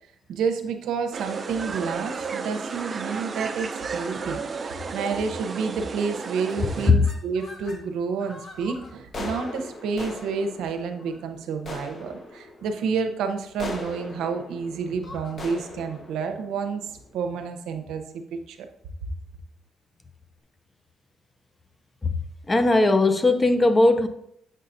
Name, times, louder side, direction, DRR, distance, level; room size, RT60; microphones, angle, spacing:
voice 1, 0.3-18.7, right 5 dB, 85° right, 0.7 m, -29 dB
sound 1, 1.1-6.9, right 5 dB, 40° right, 0.5 m, -33 dB
sound 2, 1.9-2.1 2.7-2.9 3.6-3.8 4.1-4.2 4.6-4.9 5.5-5.8 6.1-7.8 8.2-17.4, left 2 dB, 45° left, 1.2 m, -41 dB
voice 2, 22.5-24.1, left 2 dB, 20° left, 0.6 m, -18 dB
7.5 x 5.6 x 2.6 m
cardioid pair, 90°, 0 cm